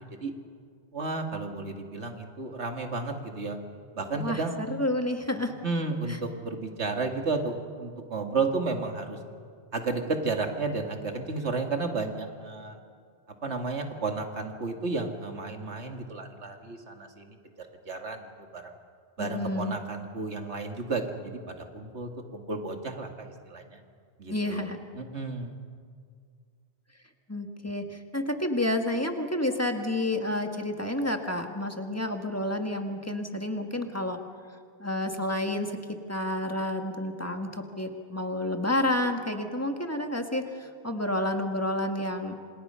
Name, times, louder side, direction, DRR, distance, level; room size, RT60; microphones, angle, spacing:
voice 1, 0.9-3.6 3.9-4.6 5.6-9.2 9.7-12.8 13.4-18.3 18.5-18.8 19.2-23.8 24.2-25.6, right 3 dB, 80° right, 4 dB, 2.4 m, -32 dB
voice 2, 4.2-5.5 19.2-19.7 24.3-24.8 27.3-34.2 34.8-35.8 36.1-42.4, left 1 dB, 15° left, 5 dB, 1.7 m, -30 dB
28.0 x 26.5 x 5.7 m, 2.1 s
omnidirectional pair, 1.1 m